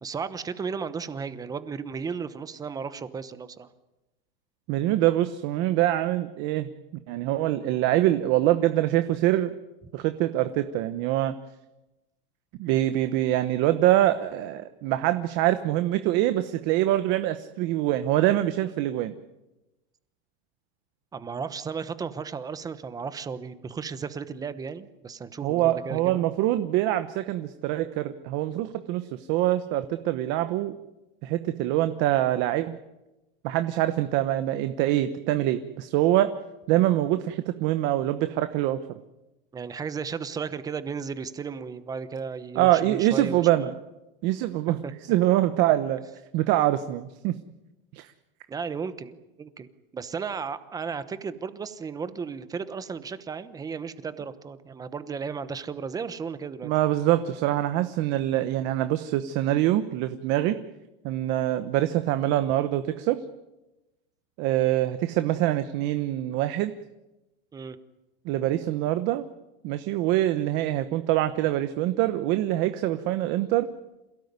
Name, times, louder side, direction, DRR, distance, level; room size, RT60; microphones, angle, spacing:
voice 1, 0.0-3.7 21.1-26.2 39.5-43.7 44.8-44.9 48.5-56.7 67.5-67.8, right 5 dB, 10° right, 13 dB, 1.0 m, -34 dB
voice 2, 4.7-6.7 7.1-9.5 9.9-11.3 12.6-19.1 25.4-30.7 31.2-32.8 33.4-36.3 36.7-38.8 42.5-43.7 44.2-46.1 46.3-47.4 47.9-48.1 56.6-60.6 61.0-63.2 64.4-66.7 68.2-69.2 69.6-73.7, right 14 dB, 40° right, 10 dB, 1.1 m, -24 dB
27.5 x 17.5 x 9.6 m, 1.0 s
supercardioid pair, 170°, 30 cm